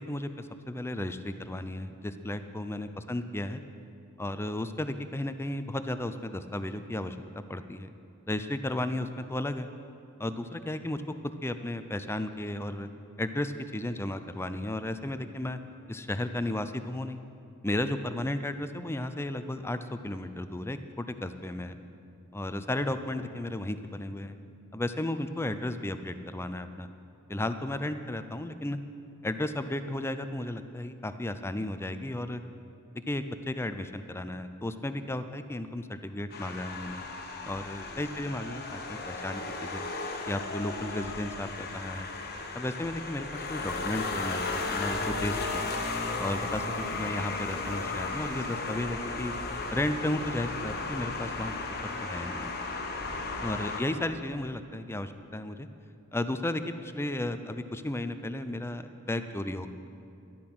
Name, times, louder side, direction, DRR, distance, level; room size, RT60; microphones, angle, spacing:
voice 1, 0.0-3.6 4.2-7.2 7.5-7.9 8.3-9.7 10.2-11.0 11.4-12.9 13.2-15.6 15.9-17.2 17.6-21.8 22.3-24.4 24.7-26.9 27.3-28.8 29.2-32.4 33.1-37.0 37.5-39.8 40.3-42.1 42.5-45.6 46.2-49.3 49.7-51.5 51.8-52.5 53.4-55.7 56.1-59.7, left 1 dB, 10° left, 10 dB, 0.5 m, -34 dB
sound 1, 36.3-53.8, left 3 dB, 45° left, 1.2 m, -35 dB
12.5 x 12.0 x 6.1 m, 2.5 s
head